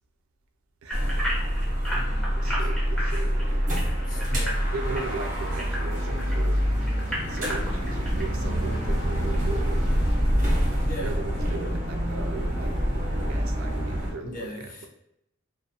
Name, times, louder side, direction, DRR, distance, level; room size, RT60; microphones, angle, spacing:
voice 1, 0.8-1.4 2.4-3.7 4.7-6.7 7.3-9.8 11.0-14.5, right 4 dB, 90° right, 5 dB, 0.4 m, -38 dB
sound 1, 0.9-6.3 6.8-8.2 8.7-8.8 9.3-9.4, equal, 5° left, 0.7 m, -33 dB
sound 2, 0.9-14.1, equal, 40° right, 0.8 m, -26 dB
voice 2, 1.9-2.7 4.1-4.6 10.8-11.2 14.2-14.9, left 1 dB, 40° left, -1 dB, 0.4 m, -39 dB
sound 3, 5.9-10.3, equal, 60° left, 1.0 m, -46 dB
2.4 x 2.1 x 2.7 m, 0.83 s
head